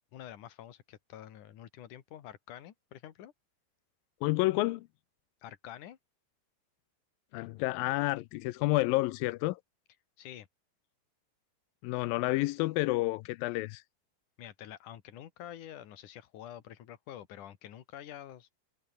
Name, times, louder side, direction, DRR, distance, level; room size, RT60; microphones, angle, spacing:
voice 1, 0.0-3.3 5.4-6.0 10.2-10.5 14.4-18.5, left 11 dB, 60° left, 2.9 m, -47 dB
voice 2, 4.2-4.9 7.3-9.6 11.8-13.8, left 20 dB, 80° left, 2.1 m, -29 dB
omnidirectional pair, 4.7 m